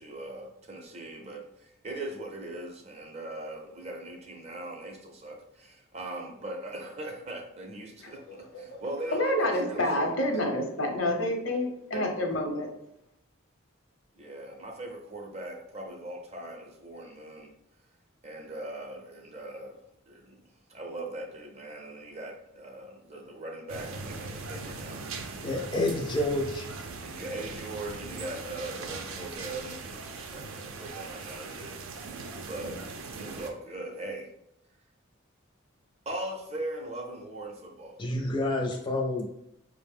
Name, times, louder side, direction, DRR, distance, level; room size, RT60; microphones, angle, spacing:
voice 1, 0.0-10.1 11.9-12.0 14.1-17.5 18.2-19.8 20.1-20.4 20.7-25.5 27.0-32.2 32.4-34.3 36.1-38.0, right 2 dB, 30° right, 2 dB, 0.5 m, -40 dB
voice 2, 8.0-8.8 9.1-12.7, left 1 dB, 75° left, 3 dB, 0.8 m, -29 dB
sound 1, 23.7-33.5, right 4 dB, 80° right, 0.5 m, -40 dB
voice 3, 25.4-26.7 38.0-39.3, left 1 dB, 25° left, 1 dB, 0.4 m, -28 dB
5.0 x 2.0 x 3.5 m, 0.79 s
head